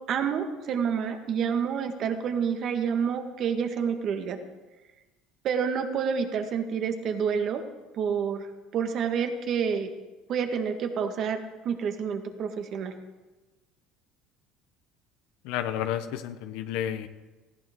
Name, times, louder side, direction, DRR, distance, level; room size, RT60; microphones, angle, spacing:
voice 1, 0.1-4.4 5.4-7.6 7.9-9.9 10.3-12.9, right 7 dB, 55° right, 5 dB, 1.8 m, -28 dB
voice 2, 15.4-17.1, left 10 dB, 75° left, 9 dB, 0.9 m, -31 dB
18.5 x 15.0 x 3.8 m, 1.2 s
supercardioid pair, 85°, 0 cm